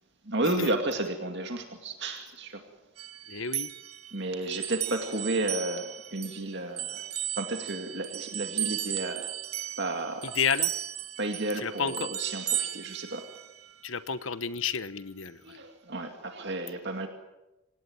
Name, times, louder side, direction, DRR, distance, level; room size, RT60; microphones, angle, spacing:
voice 1, 0.3-2.6 4.1-7.1 7.4-9.3 9.8-10.4 11.2-13.3 15.4-17.1, right 2 dB, 50° right, 4 dB, 2.3 m, -32 dB
sound 1, 3.0-6.4 6.8-13.7, right 12 dB, 85° right, 1.9 m, -35 dB
voice 2, 3.3-3.7 10.3-10.7 11.6-12.1 13.8-15.6, left 6 dB, 65° left, 14 dB, 1.1 m, -31 dB
26.5 x 18.5 x 9.2 m, 0.98 s
head